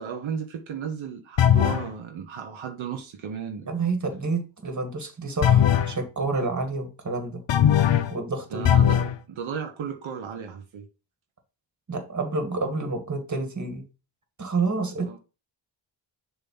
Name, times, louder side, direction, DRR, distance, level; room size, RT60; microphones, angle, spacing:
voice 1, 0.0-3.7 8.5-9.0 9.3-10.9 15.1-15.2, right 7 dB, 85° right, 1.1 m, -34 dB
sound 1, 1.4-1.9 5.4-6.0 7.5-8.2 8.6-9.2, left 10 dB, 65° left, 0.8 m, -19 dB
voice 2, 3.7-7.4 8.1-8.7 8.9-9.1 11.9-13.9 14.4-15.2, right 3 dB, 40° right, 2.0 m, -29 dB
7.0 x 3.0 x 5.5 m
cardioid pair, 75°, 46 cm